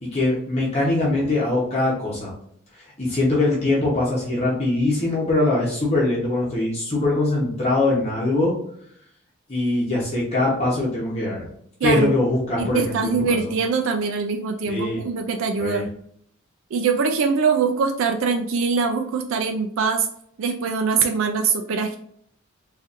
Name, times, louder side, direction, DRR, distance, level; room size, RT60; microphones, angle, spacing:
voice 1, 0.0-2.3 3.0-8.5 9.5-11.4 11.8-13.5 14.7-15.0 15.6-15.8, left 2 dB, 30° left, -5 dB, 0.9 m, -22 dB
voice 2, 11.8-12.1 12.6-15.9 16.7-20.1 20.4-22.0, right 5 dB, 75° right, 5 dB, 0.4 m, -23 dB
4.0 x 2.5 x 2.5 m, 0.66 s
head